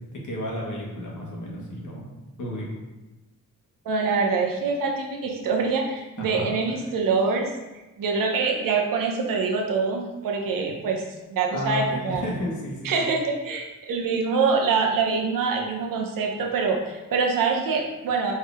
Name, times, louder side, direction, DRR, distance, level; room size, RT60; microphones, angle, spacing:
voice 1, 0.1-2.1 2.4-2.7 6.2-6.5 11.5-13.1, equal, 60° left, -3 dB, 1.4 m, -32 dB
voice 2, 3.8-7.5 8.0-11.0 11.3-12.2 12.8-18.3, right 4 dB, 75° right, 1 dB, 0.8 m, -25 dB
4.7 x 2.8 x 3.5 m, 1.1 s
cardioid pair, 85°, 33 cm